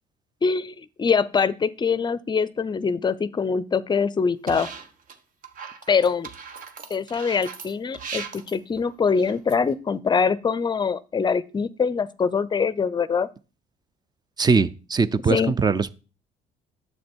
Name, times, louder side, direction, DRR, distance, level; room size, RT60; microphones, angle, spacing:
voice 1, 0.4-4.7 5.9-6.3 6.9-13.3 15.3-15.5, left 5 dB, 25° left, 0.5 m, -23 dB
sound 1, 4.5-5.1 5.4-9.7, right 6 dB, 55° right, 1.3 m, -38 dB
voice 2, 14.4-15.9, right 4 dB, 25° right, 0.5 m, -21 dB
9.5 x 7.5 x 4.5 m
cardioid pair, 110°, 17 cm